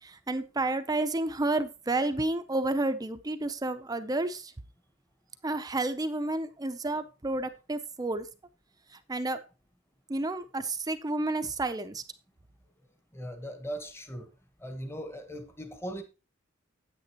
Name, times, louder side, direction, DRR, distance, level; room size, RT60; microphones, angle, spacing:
voice 1, 0.0-4.5 5.4-8.3 8.9-9.4 10.1-12.0, right 2 dB, 20° right, 0.6 m, -30 dB
voice 2, 13.1-14.3 14.6-16.0, equal, 10° left, 1.1 m, -39 dB
9.5 x 8.9 x 2.9 m
head